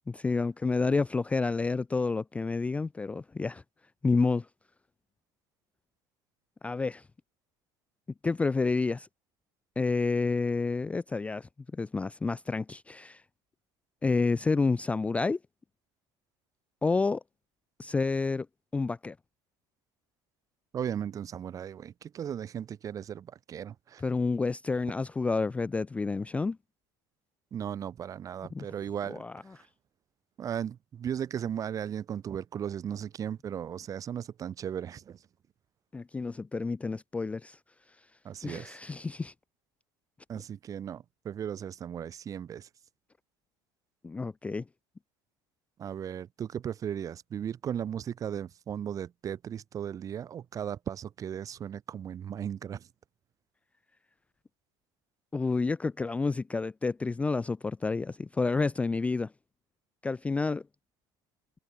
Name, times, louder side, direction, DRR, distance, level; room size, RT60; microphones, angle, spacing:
voice 1, 0.1-3.6 4.0-4.5 6.6-7.0 8.2-9.1 9.8-11.5 11.8-13.2 14.0-15.4 16.8-17.2 17.8-18.5 18.7-19.1 24.0-26.6 28.5-28.7 29.1-29.3 35.9-37.6 38.4-39.3 44.0-44.6 55.3-59.3 60.0-60.6, left 4 dB, 15° left, 0.4 m, -29 dB
voice 2, 20.7-24.0 27.5-29.2 30.4-35.2 38.2-38.8 40.3-42.7 45.8-52.9, right 9 dB, 35° right, 1.0 m, -36 dB
supercardioid pair, 115°, 10 cm